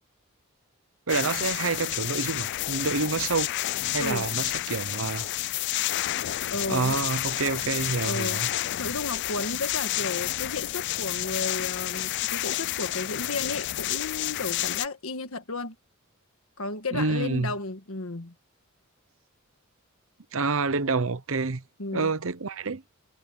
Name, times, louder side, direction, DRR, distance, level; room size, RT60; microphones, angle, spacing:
sound 1, 1.1-14.9, left 15 dB, 55° left, 0.4 m, -30 dB
voice 1, 1.1-3.5 3.9-5.3 6.7-8.5 16.9-17.5 20.3-21.6 21.9-22.8, right 4 dB, 65° right, 0.9 m, -28 dB
voice 2, 6.5-7.1 8.0-8.4 8.8-15.7 16.6-18.3 21.8-22.1, left 3 dB, 70° left, 1.7 m, -33 dB
head